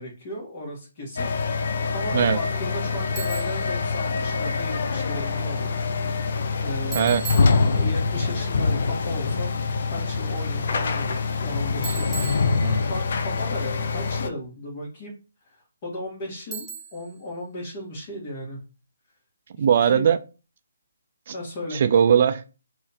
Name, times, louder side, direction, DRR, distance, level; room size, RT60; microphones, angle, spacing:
voice 1, 0.0-5.8 6.6-7.3 7.7-9.5 9.9-12.4 12.8-15.1 15.4-18.6 19.5-20.0 21.3-21.9, left 1 dB, 30° left, -1 dB, 1.7 m, -36 dB
sound 1, 1.2-14.3, left 4 dB, 50° left, 0.5 m, -25 dB
Bicycle, 3.2-3.7 6.9-8.1 11.8-13.1 16.5-17.2, right 6 dB, 5° right, 0.7 m, -37 dB
voice 2, 19.6-20.2 21.3-21.4 21.7-22.6, right 8 dB, 40° right, 10 dB, 0.3 m, -20 dB
3.1 x 2.8 x 4.2 m, 0.33 s
hypercardioid pair, 165°, 0 cm